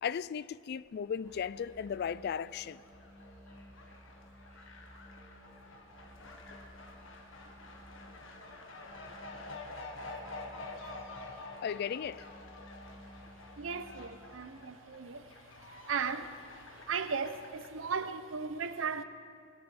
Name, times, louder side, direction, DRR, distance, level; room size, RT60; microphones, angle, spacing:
voice 1, 0.0-2.8 11.6-12.3, left 7 dB, 50° left, 0.3 m, -36 dB
Fowl, 0.9-18.2, left 2 dB, 70° left, 1.5 m, -49 dB
sound 1, 1.2-14.1, equal, 10° left, 2.6 m, -56 dB
voice 2, 13.6-15.3 15.9-16.4 16.9-19.0, right 5 dB, 70° right, 0.7 m, -36 dB
20.5 x 10.5 x 4.9 m
head